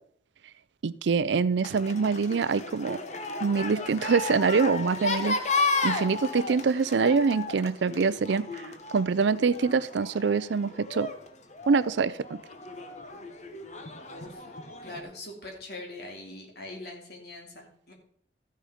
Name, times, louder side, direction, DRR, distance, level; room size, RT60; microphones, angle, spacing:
voice 1, 0.8-3.0 3.4-5.4 5.8-8.5 8.9-11.1 11.7-12.2, right 5 dB, 70° right, 0.4 m, -25 dB
sound 1, 1.6-15.0, left 3 dB, 35° left, 1.0 m, -34 dB
voice 2, 14.1-14.5 14.8-17.9, left 2 dB, 55° left, 2.8 m, -42 dB
13.5 x 6.5 x 5.0 m
head